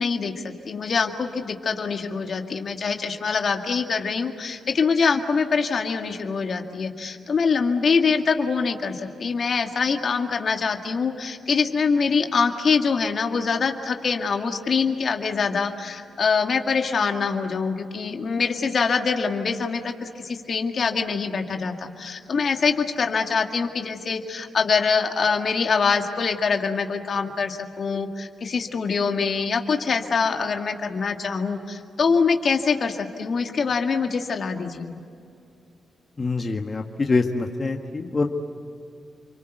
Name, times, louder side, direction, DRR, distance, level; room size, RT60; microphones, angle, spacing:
voice 1, 0.0-35.0, left 5 dB, 60° left, 4 dB, 2.1 m, -24 dB
voice 2, 36.2-38.2, left 3 dB, 40° left, 3 dB, 1.8 m, -25 dB
30.0 x 23.5 x 8.1 m, 2.5 s
supercardioid pair, 45°, 0 cm